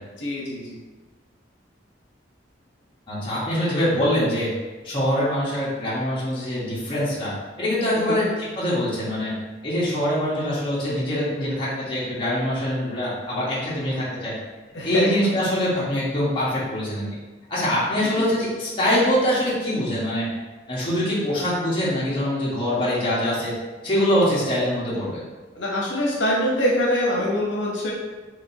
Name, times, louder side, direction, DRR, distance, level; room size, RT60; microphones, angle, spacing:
voice 1, 0.2-0.8 7.9-8.2 14.7-15.3 18.0-18.2 25.5-27.9, equal, 75° left, -4 dB, 0.9 m, -24 dB
voice 2, 3.1-4.5 4.8-7.3 7.6-9.3 9.6-14.3 14.8-17.0 17.5-20.3 20.7-23.5 23.8-25.2, equal, 30° left, -8 dB, 1.4 m, -24 dB
5.0 x 2.9 x 2.8 m, 1.2 s
head